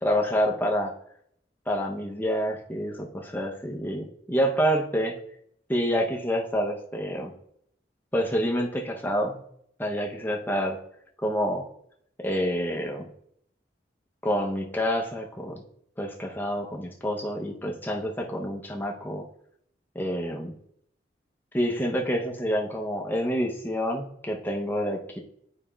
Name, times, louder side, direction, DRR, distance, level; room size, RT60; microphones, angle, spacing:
voice 1, 0.0-0.9 1.7-5.2 5.7-7.3 8.1-9.4 9.8-10.8 11.2-11.7 12.2-13.1 14.2-15.6 16.0-19.3 19.9-20.6 21.5-25.2, equal, 10° left, 1 dB, 0.6 m, -28 dB
8.9 x 4.8 x 2.2 m, 0.70 s
head